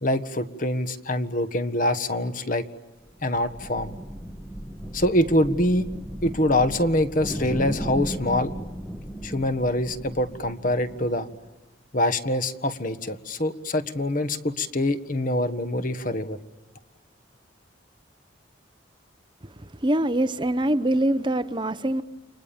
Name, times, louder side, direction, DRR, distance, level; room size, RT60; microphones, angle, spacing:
voice 1, 0.0-2.6 3.2-3.9 4.9-5.9 6.2-8.5 9.2-11.3 11.9-16.4, left 1 dB, 45° left, 10 dB, 1.6 m, -24 dB
sound 1, 3.0-11.5, right 1 dB, 10° left, 1.9 m, -36 dB
voice 2, 19.8-22.0, right 1 dB, 25° right, 12 dB, 0.9 m, -23 dB
30.0 x 25.5 x 7.2 m, 1.2 s
head